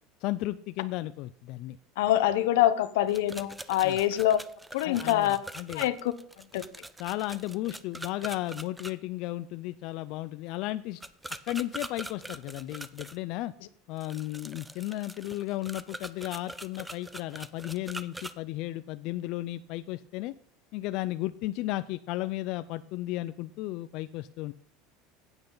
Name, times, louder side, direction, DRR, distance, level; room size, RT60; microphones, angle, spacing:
voice 1, 0.2-1.8 3.8-4.0 4.8-5.9 7.0-11.0 11.5-13.5 13.9-20.3 20.7-24.5, left 16 dB, 55° left, 13 dB, 0.3 m, -34 dB
voice 2, 2.0-4.4 4.7-5.4 5.7-6.1 6.5-6.6, left 13 dB, 85° left, 13 dB, 0.9 m, -25 dB
sound 1, 3.1-8.9 11.0-13.2 14.0-18.3, right 1 dB, 5° right, 0.5 m, -43 dB
15.5 x 8.9 x 3.9 m, 0.62 s
cardioid pair, 155°, 0 cm